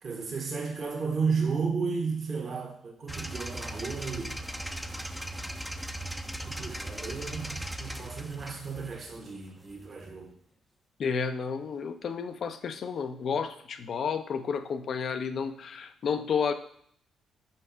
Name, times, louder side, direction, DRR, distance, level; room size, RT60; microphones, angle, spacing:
voice 1, 0.0-4.4 6.3-10.3, right 5 dB, 50° right, 0 dB, 1.4 m, -33 dB
sound 1, 3.1-10.1, right 1 dB, ahead, 0.6 m, -38 dB
voice 2, 11.0-16.5, left 6 dB, 60° left, 9 dB, 0.6 m, -31 dB
5.6 x 4.7 x 4.5 m, 0.65 s
supercardioid pair, 60°, 0 cm